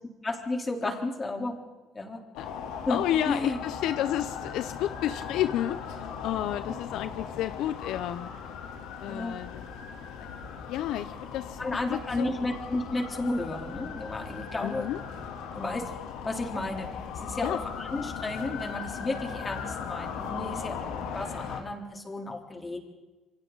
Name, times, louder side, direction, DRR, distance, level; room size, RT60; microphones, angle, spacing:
voice 1, 0.2-1.6 1.9-2.2 2.9-3.6 9.1-9.4 11.6-14.9 15.5-15.9 16.2-22.8, left 2 dB, 20° left, 2 dB, 3.6 m, -33 dB
sound 1, 2.4-21.6, left 6 dB, 90° left, 3.0 m, -38 dB
voice 2, 2.9-8.3 9.0-9.7 10.7-11.6 11.9-12.5 14.6-15.0 17.4-17.6, left 12 dB, 75° left, 12 dB, 0.7 m, -31 dB
28.0 x 24.0 x 4.0 m, 1.2 s
cardioid pair, 115°, 0 cm